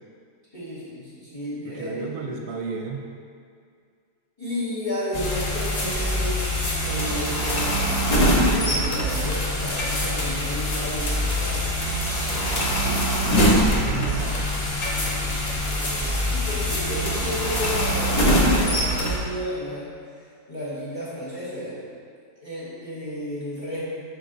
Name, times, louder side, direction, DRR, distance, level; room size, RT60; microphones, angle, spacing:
voice 1, 0.5-2.0 4.4-6.4 6.8-11.7 14.8-19.9 20.5-21.8 22.4-23.9, left 1 dB, 15° left, -10 dB, 1.9 m, -33 dB
voice 2, 1.6-3.1 12.7-13.2 13.5-14.6, right 4 dB, 70° right, 1 dB, 1.1 m, -33 dB
sound 1, 5.1-19.2, equal, 30° left, 0.8 m, -23 dB
6.8 x 5.3 x 4.0 m, 2.2 s
omnidirectional pair, 1.8 m